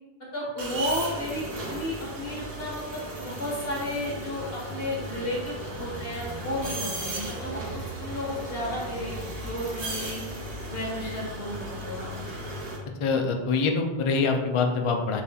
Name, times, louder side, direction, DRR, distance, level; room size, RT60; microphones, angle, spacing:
voice 1, 0.3-9.1 9.4-10.2 10.7-12.1, left 1 dB, 70° left, -4 dB, 1.6 m, -33 dB
sound 1, 0.6-12.8, right 1 dB, 65° right, 1.1 m, -36 dB
voice 2, 13.0-15.2, left 4 dB, 50° left, 3 dB, 0.3 m, -25 dB
7.0 x 2.8 x 2.3 m, 1.2 s
omnidirectional pair, 1.0 m